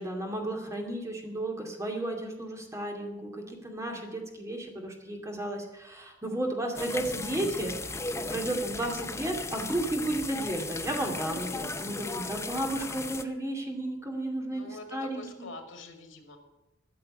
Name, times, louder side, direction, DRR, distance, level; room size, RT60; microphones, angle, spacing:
voice 1, 0.0-15.5, right 1 dB, 15° right, 1 dB, 2.5 m, -33 dB
sound 1, 6.7-13.2, left 3 dB, 15° left, 0.7 m, -36 dB
voice 2, 14.5-16.4, left 2 dB, 90° left, 5 dB, 2.4 m, -45 dB
13.5 x 6.8 x 9.8 m, 0.98 s
head